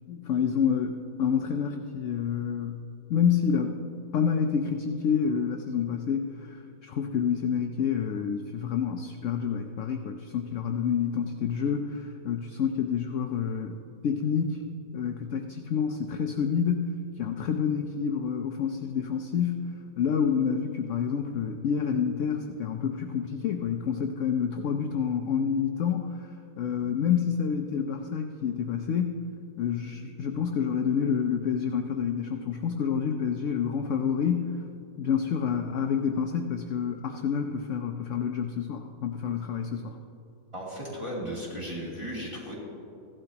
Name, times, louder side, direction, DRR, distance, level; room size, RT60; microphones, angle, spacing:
voice 1, 0.1-2.8 3.1-3.8 4.1-14.6 14.9-26.3 26.6-29.2 29.6-34.5 35.0-40.0, left 7 dB, 70° left, 5 dB, 0.7 m, -28 dB
voice 2, 40.5-42.5, equal, 15° right, -7 dB, 2.9 m, -35 dB
15.5 x 12.0 x 2.9 m, 2.7 s
omnidirectional pair, 1.9 m